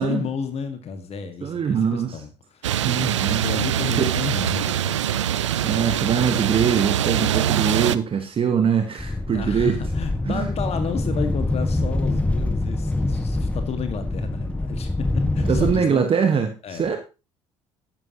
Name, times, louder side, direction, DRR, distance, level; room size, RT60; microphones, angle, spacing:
voice 1, 0.0-3.1 3.4-5.3 9.3-16.0 16.6-17.0, left 6 dB, 45° left, 8 dB, 1.7 m, -32 dB
voice 2, 1.4-2.2 2.8-3.4 4.0-4.1 5.6-9.8 10.2-10.5 15.5-17.0, right 7 dB, 35° right, 6 dB, 1.3 m, -22 dB
sound 1, 2.6-8.0, right 10 dB, 85° right, 0.5 m, -23 dB
sound 2, 9.0-15.7, left 2 dB, 10° left, 1.4 m, -25 dB
12.5 x 10.5 x 2.9 m, 0.31 s
figure-of-eight pair, 55°, 15 cm